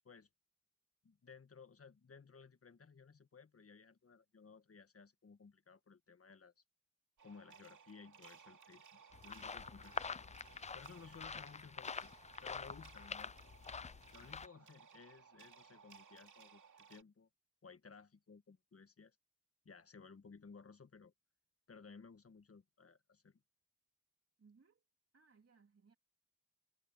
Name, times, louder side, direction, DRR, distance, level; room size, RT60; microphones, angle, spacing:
voice 1, 1.0-6.6 7.2-9.9 10.7-13.3 14.1-17.3 17.6-19.2 19.6-21.1 21.7-23.4, left 5 dB, 45° left, 1.5 m, -58 dB
sound 1, 7.2-17.0, right 6 dB, 65° right, 2.7 m, -61 dB
sound 2, 9.1-14.5, left 5 dB, 20° left, 0.3 m, -46 dB
voice 2, 11.0-11.3 14.2-14.7 24.4-24.8 25.1-26.0, right 5 dB, 45° right, 3.3 m, -69 dB
wide cardioid pair, 95°, 33 cm